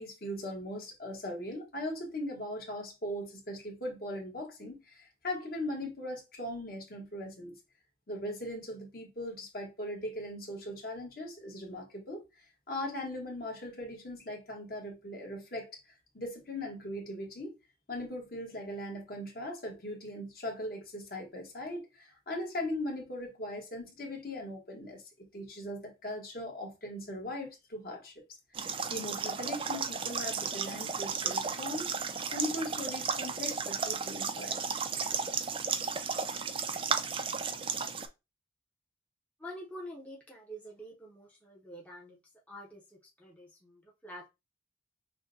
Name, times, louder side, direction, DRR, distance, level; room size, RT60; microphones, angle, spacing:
voice 1, 0.0-7.5 8.1-12.2 12.7-15.7 16.1-17.5 17.9-28.1 28.6-34.8, left 1 dB, 50° left, 1.2 m, -39 dB
sound 1, 28.5-38.1, right 5 dB, 30° right, 0.3 m, -34 dB
voice 2, 39.4-42.2 42.5-44.3, equal, 10° left, 0.6 m, -47 dB
6.0 x 2.1 x 2.6 m
head